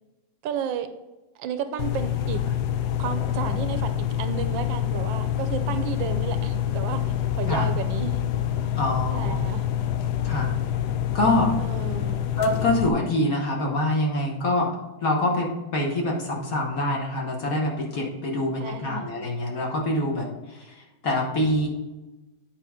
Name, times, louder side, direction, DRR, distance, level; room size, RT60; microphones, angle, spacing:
voice 1, 0.4-0.9 1.4-2.4 3.0-7.0 7.3-8.2 9.1-9.7 11.6-12.3 18.6-19.1, right 7 dB, 75° right, 9 dB, 1.3 m, -32 dB
sound 1, 1.8-12.9, left 10 dB, 75° left, 0.9 m, -26 dB
voice 2, 8.8-9.4 10.2-10.5 11.1-11.5 12.4-14.7 15.0-21.7, left 1 dB, 50° left, -1 dB, 1.5 m, -25 dB
8.3 x 5.3 x 3.6 m, 1.1 s
omnidirectional pair, 2.1 m